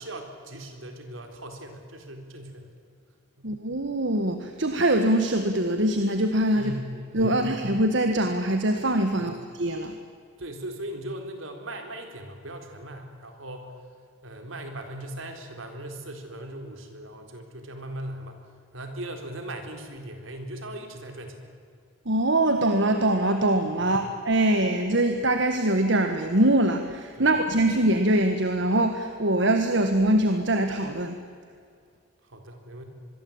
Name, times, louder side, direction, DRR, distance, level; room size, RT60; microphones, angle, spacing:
voice 1, 0.0-2.7 3.4-3.5 6.5-7.5 9.2-9.3 10.4-13.8 14.2-18.4 18.7-21.5 23.8-24.0 27.2-27.3 32.2-32.8, right 1 dB, 75° right, 5 dB, 4.1 m, -39 dB
voice 2, 3.4-6.7 7.1-9.9 22.0-31.2, right 1 dB, 60° right, 6 dB, 1.6 m, -23 dB
26.0 x 22.0 x 8.9 m, 2.2 s
head